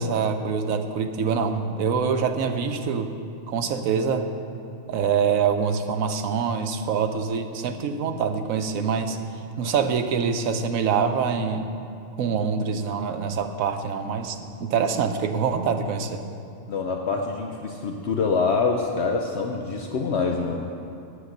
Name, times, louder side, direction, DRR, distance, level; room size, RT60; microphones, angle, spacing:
voice 1, 0.0-3.1 3.5-4.3 4.9-9.2 9.6-11.7 12.2-16.2, right 6 dB, 85° right, 7 dB, 1.1 m, -25 dB
voice 2, 16.7-20.7, left 4 dB, 60° left, 2 dB, 0.9 m, -25 dB
9.9 x 8.2 x 6.5 m, 2.6 s
omnidirectional pair, 1.4 m